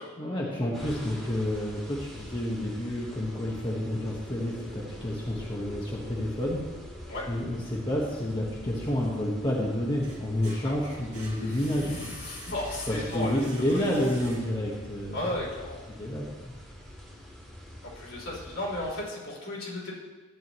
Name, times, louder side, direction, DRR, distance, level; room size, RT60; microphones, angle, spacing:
voice 1, 0.2-6.6 7.3-11.9 12.9-15.3 16.0-16.5, left 1 dB, 25° left, -4 dB, 1.2 m, -29 dB
sound 1, 0.7-19.0, equal, ahead, 2.4 m, -45 dB
sound 2, 8.5-9.3 9.8-14.8, right 1 dB, 35° right, 2.1 m, -46 dB
voice 2, 11.5-14.0 15.1-15.8 17.8-19.9, left 1 dB, 75° left, -6 dB, 3.6 m, -35 dB
12.5 x 9.3 x 3.1 m, 1.3 s
head